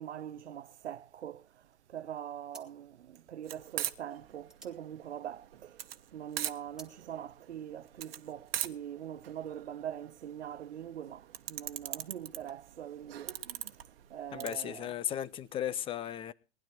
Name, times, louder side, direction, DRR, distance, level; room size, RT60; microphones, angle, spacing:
voice 1, 0.0-1.4 1.9-5.7 6.1-11.2 11.5-13.3 14.1-14.9, right 10 dB, 80° right, 0.8 m, -43 dB
sound 1, 2.5-5.8 6.2-7.0, right 2 dB, ahead, 2.4 m, -56 dB
sound 2, 3.5-14.5, right 12 dB, 60° right, 1.3 m, -41 dB
voice 2, 14.3-16.3, left 10 dB, 15° left, 0.6 m, -35 dB
19.5 x 11.0 x 4.4 m
hypercardioid pair, 125°, 34 cm